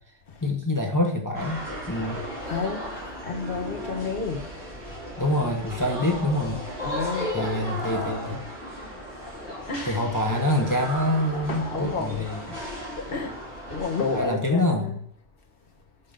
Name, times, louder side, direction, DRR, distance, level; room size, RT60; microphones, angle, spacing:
voice 1, 0.4-2.2 5.2-6.6 7.3-8.4 9.8-12.6 14.1-14.9, left 1 dB, 20° left, 0.8 m, -26 dB
sound 1, 1.3-14.2, equal, 45° right, 3.5 m, -35 dB
voice 2, 1.7-2.1 2.4-4.5 4.8-5.0 6.8-7.5 7.8-8.4 9.3-10.0 11.3-12.7 13.0-13.4 13.7-15.0, left 4 dB, 50° left, 1.4 m, -32 dB
5.9 x 5.3 x 5.2 m
omnidirectional pair, 1.2 m